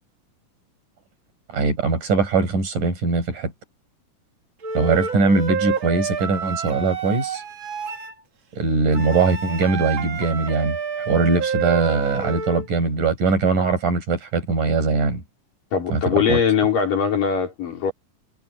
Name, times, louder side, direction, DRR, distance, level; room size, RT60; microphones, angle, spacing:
voice 1, 1.5-3.5 4.7-7.4 8.5-10.8 11.1-15.2 15.9-16.4, right 4 dB, 75° right, 7.4 m, -21 dB
Wind instrument woodwind instrument, 4.6-8.1 8.9-12.7, right 5 dB, 40° right, 2.5 m, -28 dB
voice 2, 15.7-17.9, left 6 dB, 90° left, 6.1 m, -21 dB
omnidirectional pair, 3.7 m